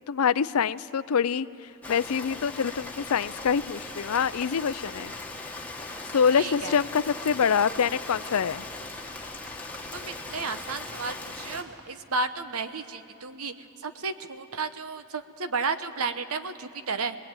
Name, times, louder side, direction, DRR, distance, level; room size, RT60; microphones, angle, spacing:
voice 1, 0.1-5.1 6.1-8.6, left 6 dB, 85° left, 17 dB, 0.5 m, -25 dB
Rain, 1.8-11.6, left 2 dB, 5° left, 1.5 m, -39 dB
voice 2, 6.4-6.7 9.9-13.5 13.8-17.2, right 4 dB, 85° right, 10 dB, 1.0 m, -32 dB
23.5 x 19.5 x 9.0 m, 2.8 s
head